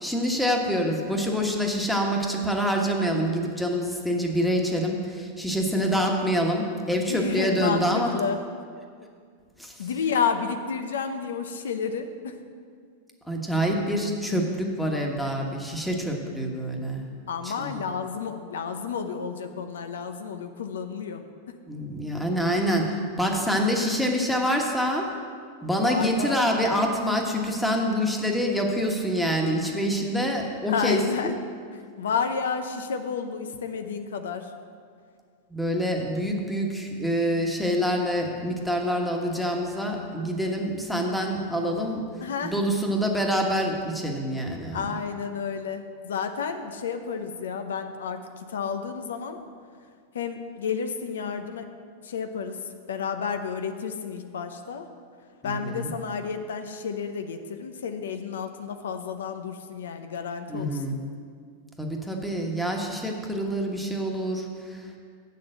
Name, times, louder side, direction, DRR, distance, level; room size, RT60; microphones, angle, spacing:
voice 1, 0.0-8.1 9.6-9.9 13.3-17.1 17.4-17.7 21.7-25.1 25.6-31.3 35.5-42.0 42.4-44.9 55.4-55.9 60.5-61.0 61.8-65.0, equal, ahead, 1 dB, 1.3 m, -26 dB
voice 2, 7.1-8.4 9.8-12.4 17.3-21.2 25.8-26.4 30.7-31.4 31.7-34.5 42.2-42.5 44.7-49.4 50.1-51.6 52.0-52.6 52.9-54.9 55.4-61.0, left 6 dB, 90° left, 7 dB, 0.7 m, -31 dB
7.1 x 6.6 x 7.7 m, 2.1 s
hypercardioid pair, 130°, 0 cm